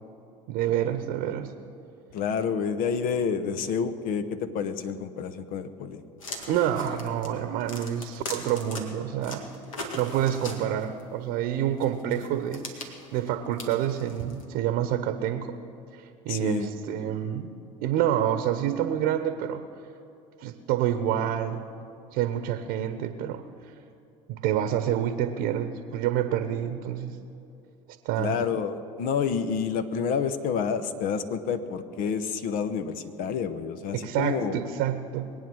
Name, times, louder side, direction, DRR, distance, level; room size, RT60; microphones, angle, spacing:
voice 1, 0.5-1.5 6.5-9.4 9.9-15.5 15.9-17.5 17.8-19.6 20.4-21.7 22.1-23.4 24.3-27.2 28.0-28.4 33.9-35.3, right 10 dB, 65° right, 10 dB, 1.0 m, -28 dB
voice 2, 2.1-6.0 16.3-16.7 28.2-34.6, left 6 dB, 60° left, 11 dB, 1.1 m, -29 dB
sound 1, 6.2-8.8 9.2-11.0 11.8-14.4, left 2 dB, 90° left, 1.9 m, -39 dB
22.5 x 9.2 x 6.3 m, 2.7 s
hypercardioid pair, 70°, 17 cm